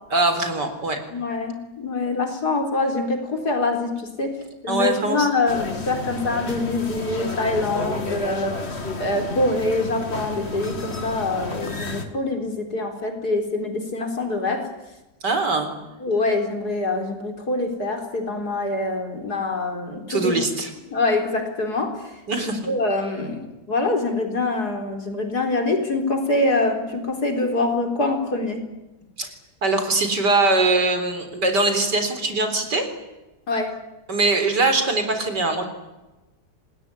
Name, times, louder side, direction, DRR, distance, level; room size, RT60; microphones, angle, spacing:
voice 1, 0.1-1.0 4.7-5.3 15.2-15.7 20.1-20.7 22.3-22.6 29.2-29.3 29.6-32.9 34.1-35.6, right 2 dB, 70° right, 8 dB, 4.6 m, -22 dB
voice 2, 1.1-4.4 4.6-8.7 9.0-14.7 16.0-20.4 20.9-22.1 22.4-28.6 33.5-33.7, left 2 dB, 60° left, 5 dB, 4.5 m, -25 dB
sound 1, 5.5-12.1, left 3 dB, 35° left, 2.4 m, -31 dB
27.0 x 19.5 x 10.0 m, 1.1 s
omnidirectional pair, 1.9 m